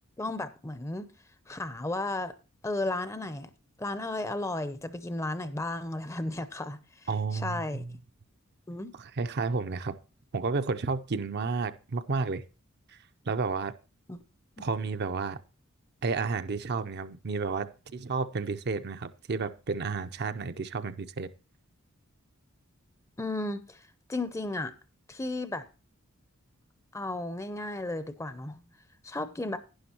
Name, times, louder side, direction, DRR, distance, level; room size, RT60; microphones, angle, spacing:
voice 1, 0.2-1.1 1.5-2.3 2.6-3.5 3.8-6.8 7.3-7.8 8.7-8.9 14.1-14.2 14.6-14.7 23.2-23.8 24.1-24.7 25.1-25.6 26.9-28.6 29.0-29.6, left 2 dB, 15° left, 0.6 m, -34 dB
voice 2, 7.1-7.9 9.0-10.0 10.3-12.4 12.9-13.0 13.3-13.7 14.6-15.4 16.0-21.3, right 4 dB, 50° right, 0.5 m, -31 dB
11.5 x 10.0 x 2.9 m
head